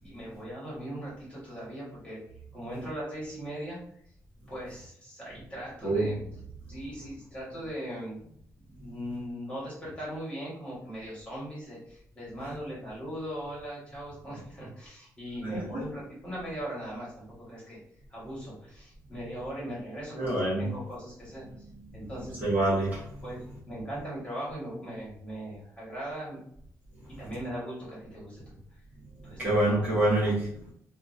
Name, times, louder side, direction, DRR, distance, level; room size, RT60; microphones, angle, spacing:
voice 1, 0.0-2.2 2.5-3.8 4.5-6.4 6.7-8.2 8.7-17.8 18.1-20.3 20.5-21.4 21.9-22.4 23.2-23.4 23.7-26.4 27.2-28.6 29.2-30.0, equal, 20° left, -7 dB, 1.5 m, -39 dB
voice 2, 20.2-20.7 22.4-23.0 29.4-30.7, right 1 dB, 30° right, -7 dB, 1.0 m, -26 dB
2.7 x 2.4 x 2.6 m, 0.66 s
wide cardioid pair, 165°, 6 cm